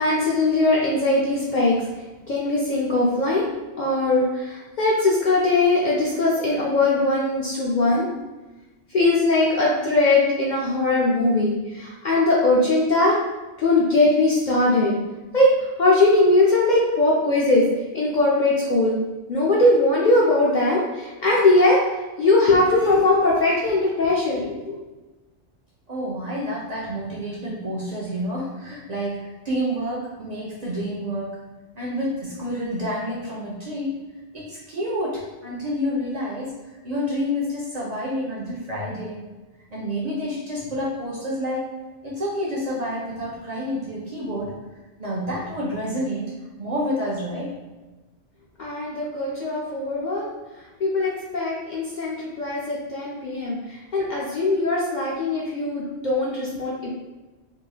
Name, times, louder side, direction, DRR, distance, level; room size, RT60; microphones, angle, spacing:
voice 1, 0.0-1.8 2.3-3.5 3.8-8.0 8.9-13.2 13.6-14.9 15.3-15.5 15.8-17.7 17.9-19.0 19.3-21.8 22.2-24.8 48.6-50.3 50.8-56.9, left 2 dB, 60° left, -5 dB, 0.5 m, -20 dB
voice 2, 25.9-31.4 31.8-34.0 34.3-36.5 36.8-39.2 39.7-41.6 42.0-44.5 45.0-46.3 46.6-47.5, equal, 45° right, -5 dB, 0.5 m, -28 dB
3.0 x 2.7 x 2.3 m, 1.1 s
omnidirectional pair, 1.2 m